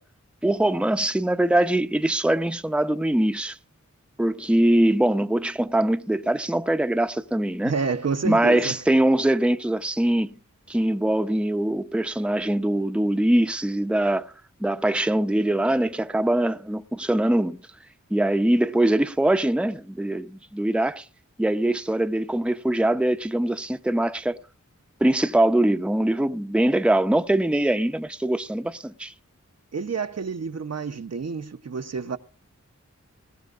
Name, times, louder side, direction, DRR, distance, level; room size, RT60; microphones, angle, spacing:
voice 1, 0.4-3.6 4.2-7.7 8.2-10.3 10.7-14.3 14.6-17.6 18.1-21.0 21.4-24.4 25.0-29.1, right 1 dB, 5° right, 0.7 m, -22 dB
voice 2, 7.6-8.8 29.7-32.2, right 5 dB, 60° right, 0.8 m, -29 dB
20.5 x 17.5 x 2.5 m
wide cardioid pair, 50°, 29 cm